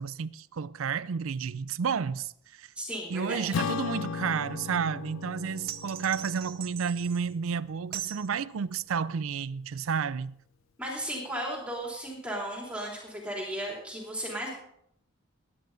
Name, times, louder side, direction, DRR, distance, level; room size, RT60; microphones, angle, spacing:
voice 1, 0.0-2.7 3.1-10.4, right 6 dB, 90° right, 0.5 m, -31 dB
voice 2, 2.7-3.6 10.8-14.5, equal, 5° right, 3.2 m, -35 dB
Acoustic guitar / Strum, 3.5-8.2, left 5 dB, 75° left, 0.4 m, -37 dB
sound 1, 5.7-7.3 7.9-8.3, right 12 dB, 45° right, 0.7 m, -40 dB
19.5 x 10.5 x 4.0 m
head